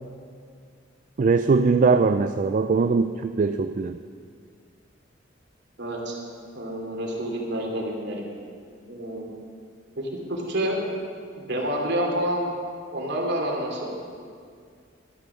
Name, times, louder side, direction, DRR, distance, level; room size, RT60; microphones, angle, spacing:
voice 1, 1.2-4.0, right 4 dB, 45° right, 9 dB, 0.4 m, -21 dB
voice 2, 5.8-6.2 6.5-8.2 8.9-9.2 10.0-10.8 11.5-12.5 12.9-13.9, equal, 60° right, -1 dB, 2.7 m, -28 dB
13.0 x 10.0 x 6.9 m, 2.2 s
head